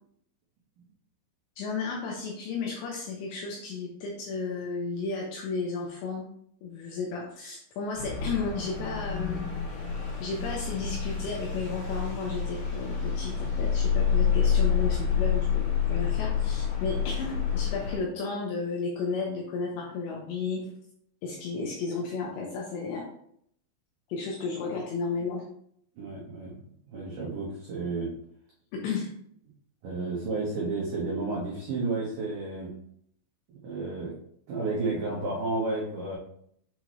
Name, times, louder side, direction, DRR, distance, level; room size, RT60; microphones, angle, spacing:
voice 1, 1.6-6.3 6.6-9.5 10.2-20.7 21.2-23.1 24.1-25.4 28.7-29.1, left 4 dB, 80° left, -1 dB, 2.6 m, -33 dB
sound 1, 7.9-18.0, left 7 dB, 60° left, 3.5 m, -28 dB
voice 2, 26.0-26.6 26.9-28.1 29.8-32.7 33.6-34.1 34.5-36.2, right 3 dB, 85° right, -6 dB, 1.9 m, -31 dB
7.5 x 4.3 x 3.0 m, 0.68 s
omnidirectional pair, 6.0 m